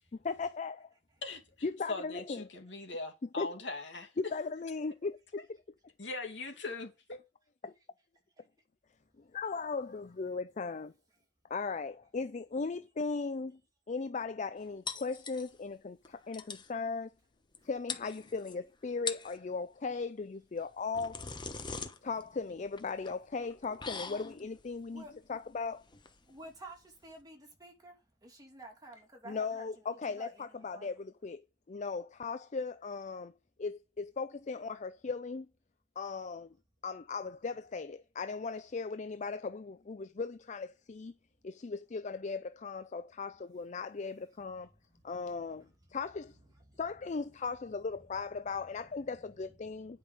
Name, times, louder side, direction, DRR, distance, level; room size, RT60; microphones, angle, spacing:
voice 1, 0.2-0.9 1.6-2.5 3.4-3.5 4.2-5.6 7.6-7.7 9.2-10.9 11.5-13.6 13.9-17.1 17.6-21.3 22.0-25.0 25.3-25.8 29.3-30.3 30.6-30.9 31.2-33.3 33.6-35.5 36.0-36.5 36.8-41.1 41.4-44.7 45.0-46.4 46.8-50.0, left 4 dB, 40° left, 0.5 m, -37 dB
voice 2, 1.9-4.1 6.0-7.2, left 3 dB, 85° left, 2.3 m, -40 dB
sound 1, 14.9-15.7 16.0-16.1 16.3-16.7 17.5-17.6 17.9-18.5 18.9-19.4 20.6-27.2, left 5 dB, 25° left, 1.1 m, -43 dB
voice 3, 24.8-25.5 26.2-30.9 43.3-43.4 44.3-44.4 44.9-45.0 45.3-46.0 46.3-47.6 48.4-50.0, right 2 dB, 20° right, 2.8 m, -54 dB
10.0 x 5.4 x 5.0 m
head